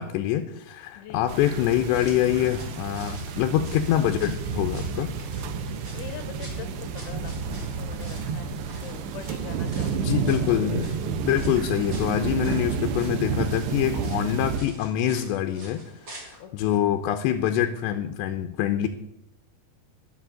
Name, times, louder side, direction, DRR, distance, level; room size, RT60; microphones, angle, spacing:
voice 1, 0.0-5.1 10.0-15.9 16.1-18.9, left 11 dB, 90° left, 6 dB, 3.0 m, -25 dB
sound 1, 1.1-9.7, left 1 dB, 30° left, 3.8 m, -50 dB
sound 2, 1.3-14.6, right 6 dB, 85° right, 3.1 m, -30 dB
sound 3, 1.7-16.4, right 1 dB, 20° right, 3.0 m, -48 dB
voice 2, 5.5-10.2 16.4-16.9, left 9 dB, 70° left, 8 dB, 3.1 m, -43 dB
12.5 x 7.8 x 7.7 m, 0.83 s
omnidirectional pair, 4.8 m